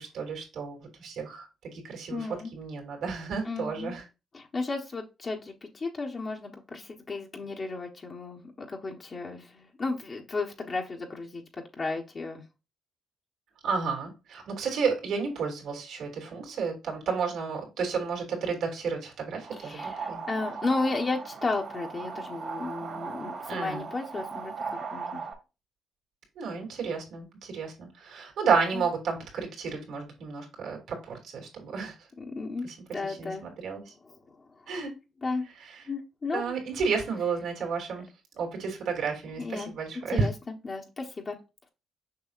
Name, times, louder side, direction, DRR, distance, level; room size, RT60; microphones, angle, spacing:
voice 1, 0.0-1.5 1.7-4.0 13.6-20.2 23.5-23.8 26.4-31.9 32.6-32.7 33.0-33.9 34.7-34.9 35.6-35.8 36.3-38.1 38.3-40.3, right 5 dB, 75° right, 1 dB, 3.1 m, -32 dB
voice 2, 2.1-2.5 3.4-3.9 4.3-11.4 11.8-12.4 19.5-25.2 28.7-28.8 32.2-32.7 32.9-33.5 34.0-34.2 35.2-35.5 35.9-36.5 39.4-39.7 40.1-40.3 40.6-41.4, left 3 dB, 35° left, 0 dB, 1.2 m, -34 dB
sound 1, 19.4-25.3, right 5 dB, 55° right, 2.2 m, -38 dB
6.8 x 5.5 x 2.5 m, 0.27 s
cardioid pair, 90°, 0 cm